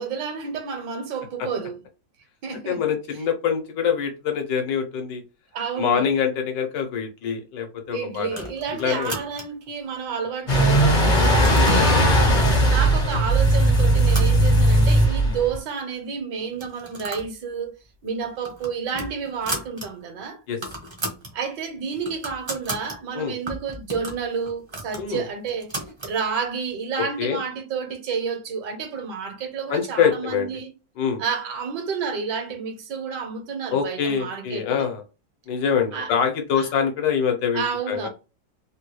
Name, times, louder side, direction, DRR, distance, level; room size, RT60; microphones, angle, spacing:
voice 1, 0.0-1.8 2.4-2.8 5.5-6.1 7.9-12.2 12.7-17.7 18.0-20.4 21.3-25.7 26.0-30.7 31.2-34.9 35.9-36.1 36.5-36.7 37.5-38.1, right 6 dB, 75° right, 1.4 m, -30 dB
voice 2, 2.7-5.2 5.8-8.5 8.8-9.2 11.6-12.1 20.5-20.6 23.1-23.3 25.0-25.2 27.2-27.4 29.7-30.5 31.0-31.2 33.7-35.0 35.5-38.1, left 7 dB, 80° left, 1.4 m, -25 dB
sound 1, 8.3-9.7 10.2-10.7 11.0-11.9 12.6-12.7 13.1-13.4 13.7-15.0 15.3-15.4 15.6-15.7 16.5-17.3 17.6-17.8 18.2-19.9 20.2-20.3 20.5-21.3 21.7-23.0 23.5-26.2, right 1 dB, 35° right, 0.4 m, -35 dB
sound 2, 10.5-15.6, right 1 dB, 50° left, 0.5 m, -18 dB
3.5 x 2.2 x 3.0 m
omnidirectional pair, 1.9 m